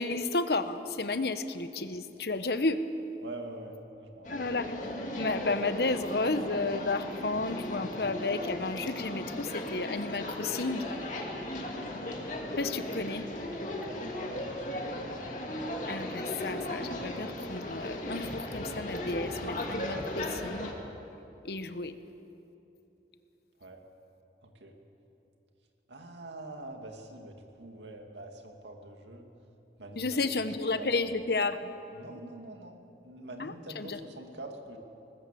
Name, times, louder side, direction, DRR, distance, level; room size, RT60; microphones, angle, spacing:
voice 1, 0.0-2.8 4.3-4.8 5.1-10.9 12.6-13.3 15.9-20.7 21.4-21.9 30.0-31.7 33.4-34.0, left 3 dB, 65° left, 10 dB, 1.0 m, -32 dB
voice 2, 3.2-4.5 13.8-15.1 23.6-23.8 24.4-24.7 25.9-29.3 29.8-30.3 30.8-30.9 31.9-34.8, right 2 dB, 90° right, 3 dB, 2.5 m, -45 dB
sound 1, 4.2-20.7, left 1 dB, 45° left, 2.4 m, -36 dB
20.0 x 20.0 x 7.7 m, 2.9 s
head